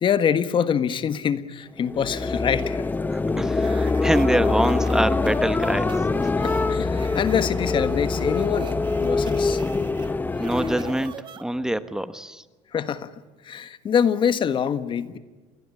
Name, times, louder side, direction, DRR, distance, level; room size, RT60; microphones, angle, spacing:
voice 1, 0.0-2.9 6.3-8.7 9.0-9.6 12.7-13.1 13.4-15.2, left 8 dB, 40° left, 13 dB, 1.5 m, -24 dB
sound 1, 1.8-11.2, left 3 dB, 15° left, 0.8 m, -24 dB
voice 2, 3.0-6.3 10.4-11.1 11.4-12.4, right 1 dB, 5° right, 12 dB, 1.2 m, -25 dB
sound 2, 3.5-11.8, right 8 dB, 40° right, 2.4 m, -43 dB
28.5 x 21.0 x 9.8 m, 1.3 s
supercardioid pair, 110°, 13 cm